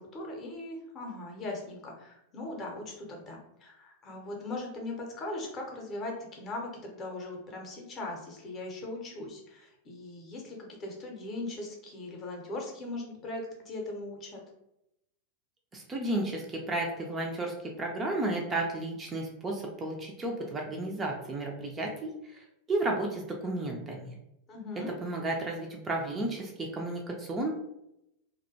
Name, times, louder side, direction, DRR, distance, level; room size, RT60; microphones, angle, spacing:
voice 1, 0.0-14.4 24.5-24.9, left 2 dB, 30° left, 0 dB, 0.7 m, -39 dB
voice 2, 15.7-24.1 25.0-27.5, right 2 dB, 20° right, 0 dB, 0.4 m, -33 dB
2.4 x 2.1 x 2.6 m, 0.84 s
figure-of-eight pair, 90°, 0 cm